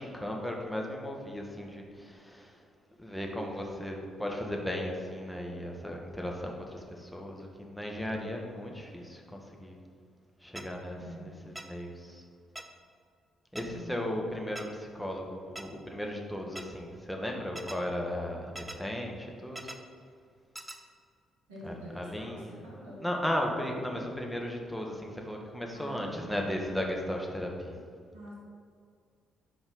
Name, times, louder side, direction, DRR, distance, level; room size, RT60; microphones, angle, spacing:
voice 1, 0.0-2.5 3.0-9.8 10.4-12.2 13.5-19.6 21.6-27.8, left 1 dB, 5° left, 0 dB, 1.7 m, -36 dB
sound 1, 10.6-10.7 11.6-11.7 12.6-12.7 13.6-13.7 14.6-14.7 15.6-15.7 16.6-16.7 17.6-17.8 18.6-18.8 19.6-19.8 20.6-20.8, right 1 dB, 15° right, 0.8 m, -40 dB
voice 2, 11.0-11.4 13.6-14.0 21.5-23.1 25.7-26.3 28.1-28.3, right 1 dB, 80° right, -5 dB, 1.4 m, -46 dB
11.5 x 5.0 x 4.1 m, 2.2 s
hypercardioid pair, 40°, 0 cm